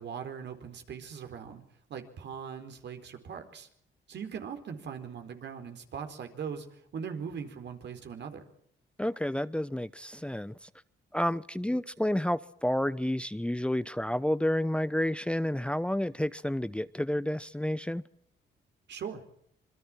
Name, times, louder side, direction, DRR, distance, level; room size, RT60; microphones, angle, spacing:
voice 1, 0.0-1.6 1.9-3.7 4.1-8.4 18.9-19.2, right 7 dB, 65° right, 4.4 m, -40 dB
voice 2, 9.0-10.7 11.1-18.0, left 1 dB, 5° left, 0.9 m, -30 dB
26.5 x 23.0 x 6.2 m
supercardioid pair, 70°, 19 cm